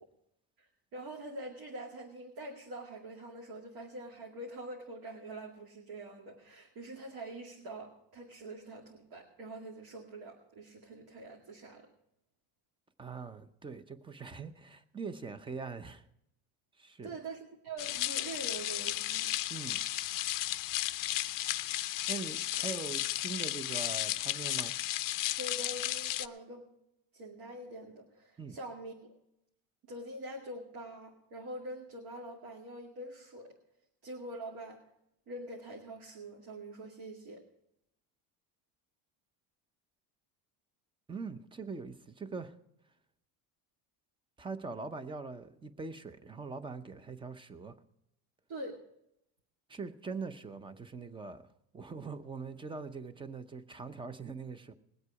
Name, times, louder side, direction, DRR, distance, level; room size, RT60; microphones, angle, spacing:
voice 1, 0.6-11.9 17.0-19.3 25.4-26.7 27.1-29.2 29.9-33.6 34.0-34.8 35.3-37.5 48.5-48.8, right 1 dB, 55° right, 2.3 m, -45 dB
voice 2, 13.0-16.0 16.8-17.2 19.5-19.8 22.1-24.7 28.4-28.6 41.1-42.5 44.4-47.8 49.7-51.5 51.7-54.7, right 4 dB, 10° right, 0.6 m, -42 dB
sound 1, 17.8-26.3, left 16 dB, 45° left, 0.6 m, -34 dB
20.5 x 8.0 x 4.8 m
cardioid pair, 145°, 45 cm